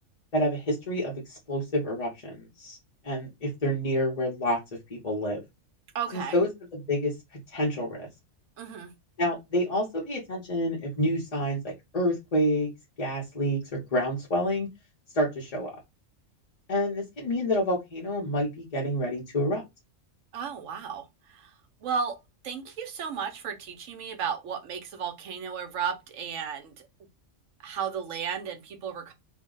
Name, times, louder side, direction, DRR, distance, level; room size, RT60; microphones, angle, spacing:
voice 1, 0.3-2.8 3.0-4.6 4.9-5.4 6.1-8.1 9.2-12.7 13.0-14.7 15.1-15.7 16.7-19.6, equal, 35° left, 0.7 m, -28 dB
voice 2, 5.9-6.3 8.6-8.9 20.3-21.0 21.3-21.5 21.8-22.2 22.4-26.9 27.6-29.1, right 7 dB, 75° right, 1.1 m, -34 dB
2.7 x 2.1 x 3.7 m
omnidirectional pair, 1.3 m